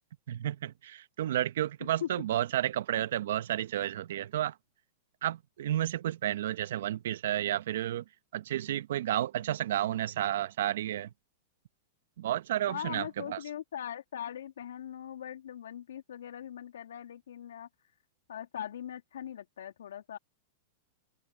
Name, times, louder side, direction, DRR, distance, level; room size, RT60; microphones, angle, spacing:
voice 1, 0.3-4.5 5.2-8.0 8.3-11.1 12.2-13.4, right 12 dB, 75° right, 0.9 m, -31 dB
voice 2, 12.7-17.9 18.3-20.2, left 10 dB, 85° left, 2.9 m, -41 dB
open air
hypercardioid pair, 125°, 0 cm